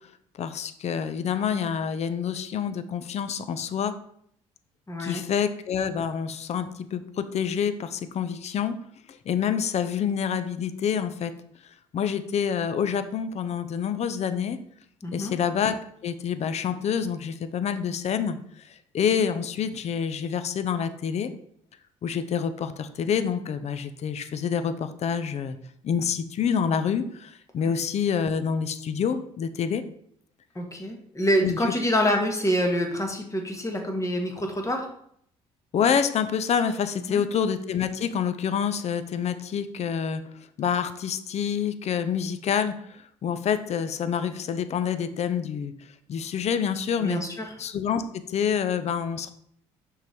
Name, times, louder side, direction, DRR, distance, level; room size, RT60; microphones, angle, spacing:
voice 1, 0.3-3.9 5.0-8.7 9.1-11.3 11.9-14.6 15.1-15.7 16.0-18.4 18.9-21.3 22.0-25.6 25.8-29.8 31.4-31.6 35.7-40.2 40.6-45.7 46.1-47.2 47.6-49.3, left 7 dB, 50° left, 11 dB, 0.6 m, -27 dB
voice 2, 4.9-5.2 15.0-15.4 30.5-34.9 37.1-37.2 47.0-47.5, equal, 20° left, 2 dB, 1.6 m, -26 dB
5.8 x 3.9 x 4.4 m, 0.67 s
supercardioid pair, 65°, 14 cm